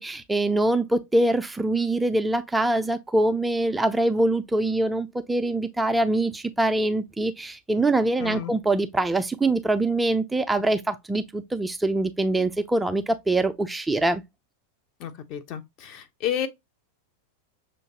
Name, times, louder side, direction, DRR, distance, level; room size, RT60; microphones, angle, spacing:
voice 1, 0.0-14.2, right 2 dB, 5° right, 0.4 m, -24 dB
voice 2, 8.2-8.5 15.0-16.5, left 10 dB, 40° left, 0.7 m, -31 dB
6.3 x 2.5 x 2.8 m
figure-of-eight pair, 90°, 0 cm